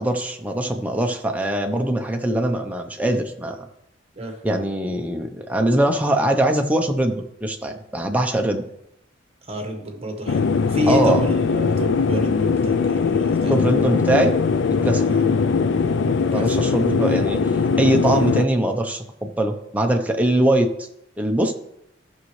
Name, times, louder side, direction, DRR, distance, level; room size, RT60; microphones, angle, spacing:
voice 1, 0.0-3.6 4.4-8.6 10.9-11.2 13.5-14.4 14.8-15.1 16.3-17.5 17.8-20.7 21.2-21.5, right 1 dB, 10° right, 3 dB, 0.7 m, -22 dB
voice 2, 9.5-13.6 15.0-15.2 16.3-16.5, equal, 30° right, 3 dB, 1.4 m, -28 dB
sound 1, 10.3-18.5, left 5 dB, 70° left, 0.4 m, -20 dB
13.5 x 6.4 x 3.2 m, 0.80 s
head